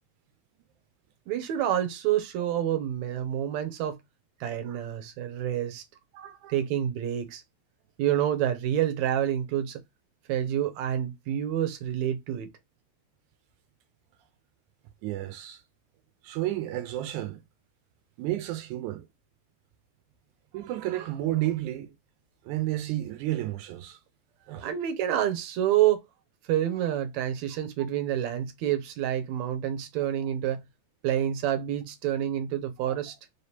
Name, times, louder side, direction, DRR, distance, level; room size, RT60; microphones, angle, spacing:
voice 1, 1.3-4.0 4.4-5.8 6.5-7.4 8.0-9.8 10.3-12.5 24.6-26.0 26.5-30.6 31.0-33.1, right 11 dB, 75° right, 2.0 m, -28 dB
voice 2, 6.1-6.5 15.0-15.6 16.2-17.4 18.2-19.1 20.5-21.9 22.5-24.0 24.5-24.7 26.8-26.9 32.9-33.0, right 14 dB, 90° right, 2.1 m, -32 dB
4.7 x 3.4 x 2.8 m
omnidirectional pair, 3.4 m